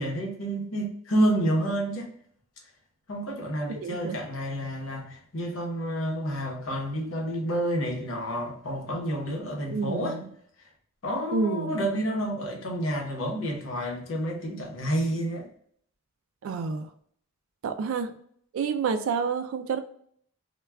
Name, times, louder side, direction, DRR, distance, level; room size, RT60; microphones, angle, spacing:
voice 1, 0.0-2.1 3.1-10.2 11.0-15.5, right 1 dB, 90° left, 0 dB, 0.8 m, -29 dB
voice 2, 3.8-4.2 9.7-10.3 11.3-11.8 16.4-16.9 17.6-18.1 18.5-19.8, right 5 dB, 75° right, 8 dB, 0.3 m, -29 dB
2.3 x 2.2 x 3.3 m, 0.63 s
head